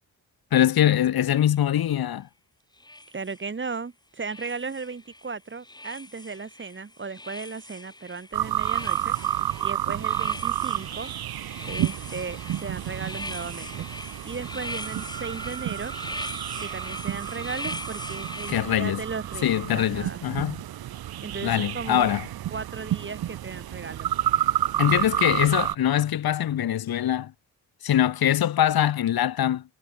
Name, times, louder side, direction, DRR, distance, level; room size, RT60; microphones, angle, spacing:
voice 1, 0.5-2.3 18.5-19.0 19.4-20.6 21.4-22.2 24.8-27.3 27.8-29.6, left 11 dB, 85° left, 2.9 m, -23 dB
sound 1, 1.4-1.6 2.8-3.8 4.2-5.3 5.6-18.6, left 2 dB, 10° left, 5.9 m, -40 dB
voice 2, 3.1-9.1 9.6-11.1 11.6-13.9 14.2-15.9 16.6-20.2 21.2-22.1 22.5-24.1, right 4 dB, 30° right, 7.0 m, -36 dB
sound 2, 8.3-25.7, right 12 dB, 85° right, 1.4 m, -30 dB
cardioid pair, 120°, 36 cm